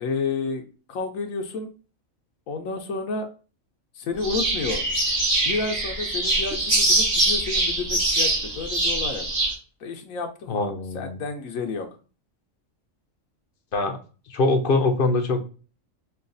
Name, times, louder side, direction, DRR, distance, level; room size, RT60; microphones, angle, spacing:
voice 1, 0.0-1.7 2.5-3.3 4.0-4.8 5.4-9.2 9.8-11.9, left 4 dB, 85° left, 5 dB, 1.1 m, -30 dB
sound 1, 4.2-9.5, right 2 dB, 65° right, 2.1 m, -23 dB
voice 2, 10.5-11.2 13.7-14.0 14.3-15.4, left 2 dB, 55° left, 6 dB, 0.6 m, -23 dB
5.6 x 2.3 x 2.5 m, 0.35 s
omnidirectional pair, 1.4 m